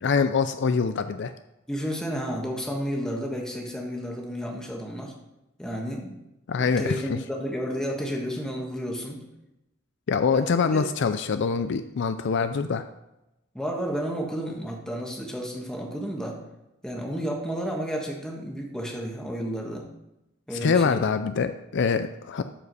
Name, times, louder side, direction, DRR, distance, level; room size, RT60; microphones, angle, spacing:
voice 1, 0.0-1.3 6.5-7.2 10.1-12.8 20.5-22.4, left 5 dB, 60° left, 10 dB, 0.4 m, -24 dB
voice 2, 1.7-5.1 5.6-6.2 6.6-9.2 10.3-10.8 13.5-16.4 16.8-19.9 20.5-21.0, equal, 5° left, -1 dB, 1.6 m, -32 dB
13.0 x 4.9 x 4.8 m, 0.93 s
head